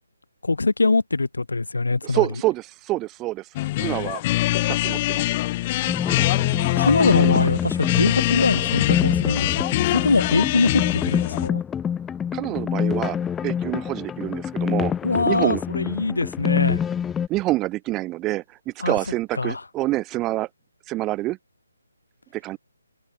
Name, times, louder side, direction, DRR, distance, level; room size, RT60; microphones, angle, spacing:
voice 1, 0.4-2.3 6.8-11.6 15.0-16.8 18.8-19.0 19.4-19.6, left 3 dB, 70° left, 3.8 m, -22 dB
voice 2, 2.0-4.2 4.7-5.4 12.3-13.2 13.4-14.9 15.2-15.6 17.3-18.4 18.8-20.5 20.9-21.4 22.3-22.6, right 18 dB, 15° right, 2.9 m, -26 dB
sound 1, 3.5-11.5, left 17 dB, 25° left, 3.5 m, -24 dB
sound 2, 5.9-17.3, left 8 dB, 10° left, 0.5 m, -27 dB
figure-of-eight pair, 145°, 0 cm